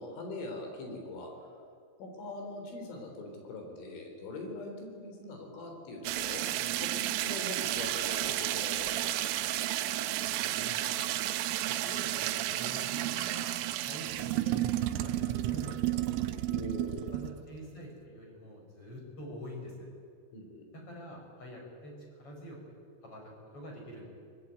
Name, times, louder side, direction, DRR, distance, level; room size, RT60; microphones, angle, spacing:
voice 1, 0.0-1.6 2.0-6.4 6.8-9.2 16.5-17.1 20.3-20.7, left 2 dB, 70° left, 3 dB, 6.4 m, -42 dB
sound 1, 6.1-17.4, right 14 dB, 85° right, 3.5 m, -32 dB
voice 2, 10.2-11.1 11.7-13.5 13.8-16.4 17.1-19.9 20.7-22.6 23.0-24.1, equal, 30° left, 1 dB, 6.1 m, -46 dB
23.5 x 21.0 x 9.3 m, 2.3 s
omnidirectional pair, 5.8 m